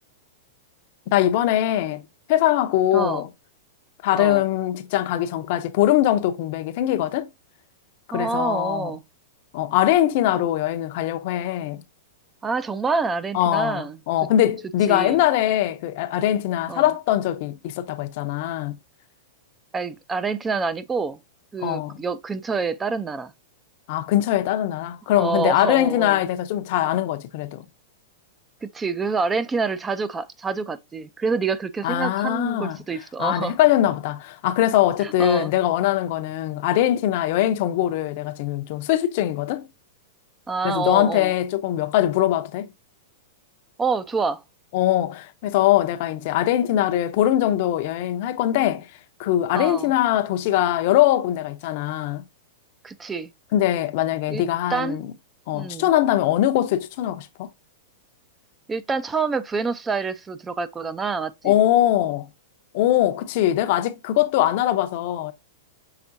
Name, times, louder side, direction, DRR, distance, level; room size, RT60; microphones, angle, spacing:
voice 1, 1.1-2.0 2.3-3.3 4.0-7.3 8.1-8.9 9.5-11.8 13.3-18.8 21.6-22.0 23.9-27.6 31.8-32.8 33.2-39.7 40.6-42.7 44.7-48.8 49.2-52.2 53.5-55.0 55.5-57.5 61.4-62.3 62.7-65.3, left 13 dB, 55° left, 0.6 m, -22 dB
voice 2, 2.9-3.2 4.2-4.4 8.1-9.0 12.4-14.0 14.9-15.2 16.7-16.9 19.7-21.2 21.5-23.3 25.2-26.2 28.6-33.5 35.0-35.5 40.5-41.3 43.8-44.4 49.5-49.9 52.8-53.3 54.3-54.4 54.7-55.0 55.5-55.9 58.7-61.6, right 4 dB, 15° right, 0.4 m, -27 dB
5.8 x 3.5 x 2.6 m
hypercardioid pair, 135°, 0 cm